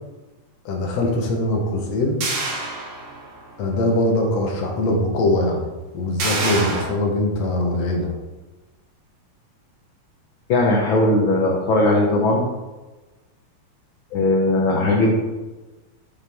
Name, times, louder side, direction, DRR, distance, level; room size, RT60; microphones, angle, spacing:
voice 1, 0.7-2.2 3.6-5.6 5.9-8.1, left 1 dB, 65° left, 0 dB, 2.1 m, -22 dB
sound 1, 2.2-3.5 3.9-4.0 6.2-6.9, right 3 dB, 60° right, 2.5 m, -26 dB
voice 2, 10.5-12.5 14.1-15.1, left 2 dB, 85° left, -1 dB, 1.1 m, -18 dB
8.1 x 5.8 x 3.5 m, 1.2 s
omnidirectional pair, 3.6 m